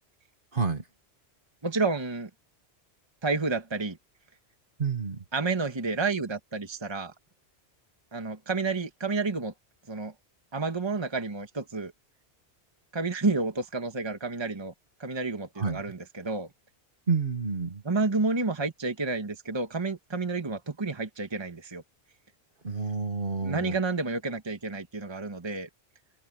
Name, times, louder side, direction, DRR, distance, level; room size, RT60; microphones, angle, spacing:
voice 1, 0.5-0.8 4.8-5.2 15.6-15.8 17.1-17.8 22.6-23.8, right 5 dB, 55° right, 1.9 m, -29 dB
voice 2, 1.6-2.3 3.2-4.0 5.3-7.1 8.1-9.5 9.9-10.1 10.5-11.9 12.9-14.7 15.0-16.5 17.8-21.8 23.4-25.7, right 3 dB, 25° right, 1.4 m, -30 dB
omnidirectional pair, 1.1 m